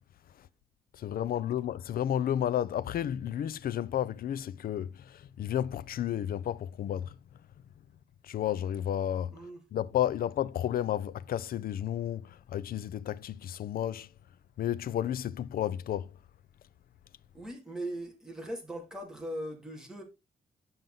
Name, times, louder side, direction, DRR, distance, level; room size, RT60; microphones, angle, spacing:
voice 1, 0.9-7.2 8.2-14.1 14.6-16.2, left 11 dB, 70° left, 0.5 m, -32 dB
voice 2, 17.3-20.0, right 1 dB, 5° right, 2.5 m, -39 dB
9.3 x 5.6 x 3.9 m
wide cardioid pair, 145°, 16 cm